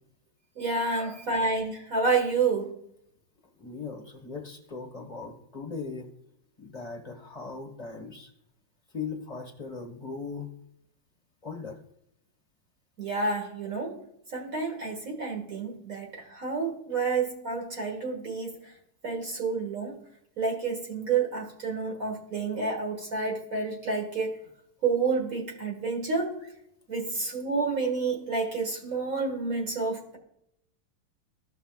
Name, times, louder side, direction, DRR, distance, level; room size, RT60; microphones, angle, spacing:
voice 1, 0.6-2.8 13.0-14.0 14.3-18.5 19.0-20.0 20.4-24.3 24.8-26.4 26.9-30.2, right 4 dB, 45° right, 0 dB, 2.0 m, -29 dB
voice 2, 3.6-6.1 6.6-8.3 8.9-10.5 11.4-11.8, left 4 dB, 20° left, 2 dB, 1.2 m, -39 dB
15.0 x 5.7 x 2.4 m, 0.75 s
omnidirectional pair, 2.2 m